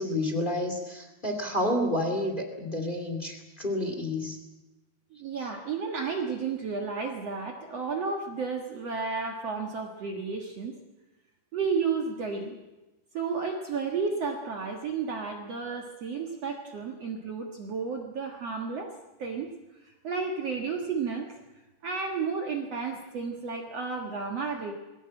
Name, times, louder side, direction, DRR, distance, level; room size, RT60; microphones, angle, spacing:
voice 1, 0.0-4.4 5.4-5.5, left 1 dB, 20° left, 4 dB, 1.6 m, -30 dB
voice 2, 5.2-10.7 11.5-12.6 13.1-18.9 19.2-19.5 20.0-21.3 21.8-24.7, right 5 dB, 55° right, 3 dB, 1.8 m, -32 dB
21.5 x 17.5 x 8.7 m, 1.1 s
omnidirectional pair, 5.0 m